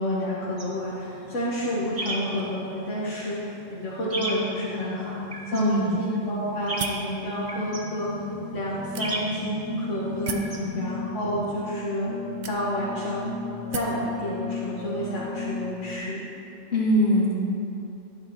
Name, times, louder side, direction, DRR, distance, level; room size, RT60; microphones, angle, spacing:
voice 1, 0.0-5.1 5.5-10.3 10.7-12.2 12.5-13.3 13.7-16.3, equal, 90° left, -7 dB, 1.5 m, -30 dB
sound 1, 0.6-11.0, right 2 dB, 30° right, 0.9 m, -38 dB
sound 2, 4.1-16.0, left 2 dB, 45° left, 2.5 m, -36 dB
voice 2, 5.5-5.9 10.3-10.8 16.7-17.4, equal, 60° left, -8 dB, 2.5 m, -23 dB
sound 3, 6.8-7.1 7.9-8.0 8.9-9.5 10.3-10.6 11.5-11.6 12.4-13.0 13.7-14.0, right 6 dB, 55° right, 0.5 m, -35 dB
11.5 x 8.7 x 2.9 m, 2.7 s
omnidirectional pair, 1.2 m